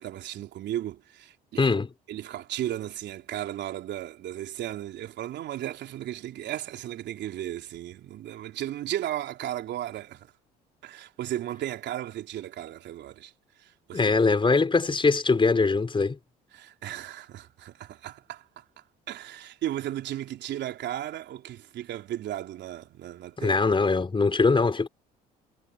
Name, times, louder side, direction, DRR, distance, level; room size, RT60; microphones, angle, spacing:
voice 1, 0.0-1.7 2.1-10.3 10.8-13.3 13.6-14.1 16.5-18.6 19.1-23.6, right 12 dB, 60° right, 3.6 m, -35 dB
voice 2, 1.6-1.9 13.9-16.2 23.4-24.9, left 4 dB, 25° left, 5.5 m, -22 dB
hypercardioid pair, 65°, 20 cm